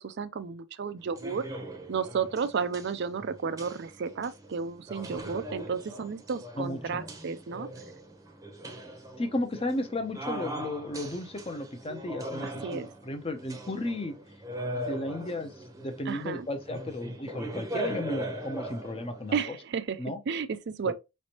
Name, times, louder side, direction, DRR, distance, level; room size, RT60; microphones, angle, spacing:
voice 1, 0.0-1.4 1.9-7.7 12.4-12.9 16.1-16.5 19.3-20.0 20.3-20.9, right 5 dB, 50° right, 0.4 m, -32 dB
sound 1, 1.0-19.3, right 1 dB, 15° right, 0.8 m, -40 dB
voice 2, 9.2-14.2 14.7-15.5 15.8-19.6 20.0-20.2 20.8-20.9, left 1 dB, 25° left, 0.6 m, -34 dB
5.1 x 3.2 x 2.8 m
head